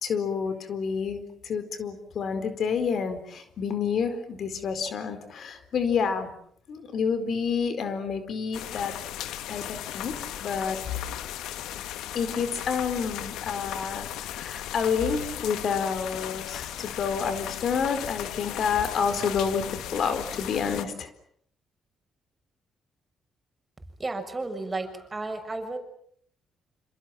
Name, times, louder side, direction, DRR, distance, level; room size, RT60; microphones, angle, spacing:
voice 1, 0.0-6.3 6.7-8.9 9.5-10.8 12.1-21.1, left 6 dB, 60° left, 10 dB, 4.2 m, -29 dB
sound 1, 8.5-20.8, left 12 dB, 90° left, 1.4 m, -36 dB
voice 2, 24.0-25.8, right 2 dB, 20° right, 6 dB, 6.7 m, -33 dB
27.5 x 27.0 x 7.5 m, 0.65 s
cardioid pair, 90°, 0 cm